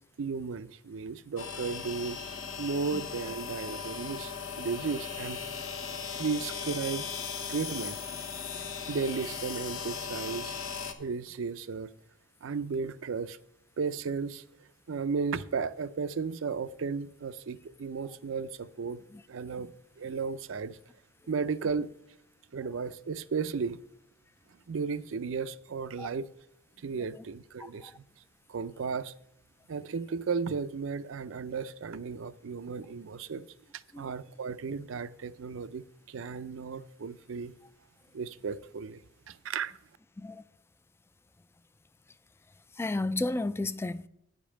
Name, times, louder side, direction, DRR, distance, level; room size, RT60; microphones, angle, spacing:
voice 1, 0.2-2.2 2.6-5.4 6.2-7.0 7.5-8.0 8.9-10.6 11.0-11.9 12.4-13.4 13.8-14.4 14.9-19.0 19.3-19.7 20.0-20.8 21.3-21.9 22.5-23.8 24.7-26.3 26.8-28.0 28.5-29.1 29.7-33.5 33.7-37.5 38.1-39.0 39.3-39.7, right 5 dB, 70° right, 0.5 m, -34 dB
sound 1, 1.4-10.9, left 6 dB, 85° left, 1.1 m, -38 dB
voice 2, 27.6-27.9 33.9-34.0 40.2-40.4 42.8-44.1, left 2 dB, 10° left, 0.3 m, -32 dB
9.5 x 5.2 x 7.2 m
head